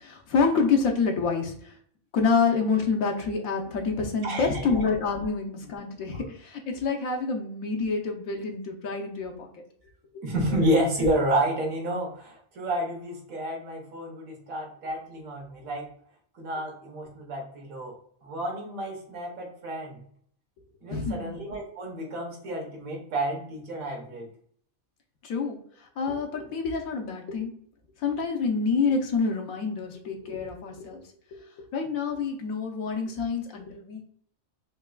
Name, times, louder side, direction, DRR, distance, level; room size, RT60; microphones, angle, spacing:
voice 1, 0.0-1.7 2.1-9.5 20.9-21.3 25.2-27.5 28.0-31.0 31.7-34.0, left 4 dB, 90° left, 2 dB, 1.2 m, -27 dB
voice 2, 4.2-4.8 10.2-15.9 16.4-17.9 18.2-20.0 20.8-24.3, right 1 dB, 75° right, 0 dB, 1.5 m, -30 dB
4.4 x 2.2 x 2.3 m, 0.62 s
omnidirectional pair, 1.4 m